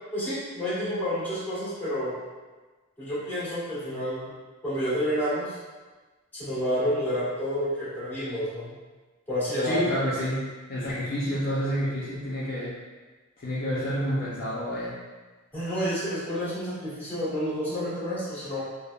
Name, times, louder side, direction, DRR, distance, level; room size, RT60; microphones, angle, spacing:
voice 1, 0.1-2.1 3.0-4.3 4.6-5.6 6.3-8.7 9.3-9.8 15.5-18.6, equal, 10° left, -12 dB, 1.3 m, -29 dB
voice 2, 9.6-12.7 13.4-14.9, equal, 45° left, -9 dB, 0.5 m, -29 dB
3.3 x 2.0 x 2.3 m, 1.3 s
head